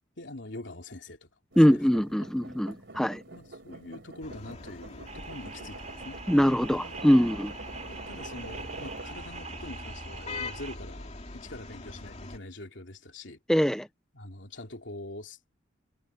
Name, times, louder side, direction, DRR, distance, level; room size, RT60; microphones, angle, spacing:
voice 1, 0.2-1.3 1.7-2.0 3.3-6.2 7.8-13.4 14.1-15.5, left 2 dB, 75° left, 2.9 m, -44 dB
sound 1, 1.5-9.1, right 2 dB, 65° right, 3.8 m, -46 dB
voice 2, 1.6-3.2 6.3-7.5 13.5-13.9, equal, 5° left, 0.6 m, -22 dB
sound 2, 4.2-12.4, left 2 dB, 35° left, 2.8 m, -43 dB
sound 3, 5.1-10.8, right 5 dB, 40° right, 4.5 m, -44 dB
head